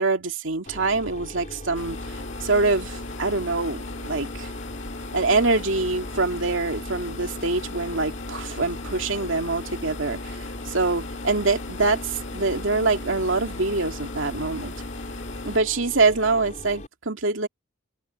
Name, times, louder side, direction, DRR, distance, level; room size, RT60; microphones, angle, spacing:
voice 1, 0.0-4.5 5.1-10.4 10.7-14.7 15.4-17.5, right 3 dB, 80° right, 2.3 m, -25 dB
Mechanisms, 0.7-16.9, left 1 dB, 40° left, 4.3 m, -40 dB
sound 1, 1.7-15.6, left 2 dB, 70° left, 2.5 m, -37 dB
open air
head